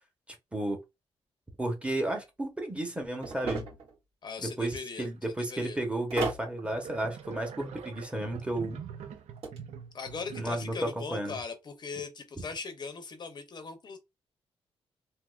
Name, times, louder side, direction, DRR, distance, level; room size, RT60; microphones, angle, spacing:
voice 1, 1.6-3.6 4.4-8.8 10.4-11.4, right 1 dB, 10° right, 0.9 m, -32 dB
sound 1, 3.2-3.9 6.1-6.5 9.1-9.6, right 4 dB, 70° right, 1.8 m, -34 dB
voice 2, 4.2-5.1 5.4-5.8 9.9-14.0, left 4 dB, 45° left, 0.6 m, -39 dB
sound 2, 5.9-6.0 6.6-10.8, right 8 dB, 90° right, 0.5 m, -44 dB
3.6 x 2.7 x 2.3 m
cardioid pair, 125°, 11 cm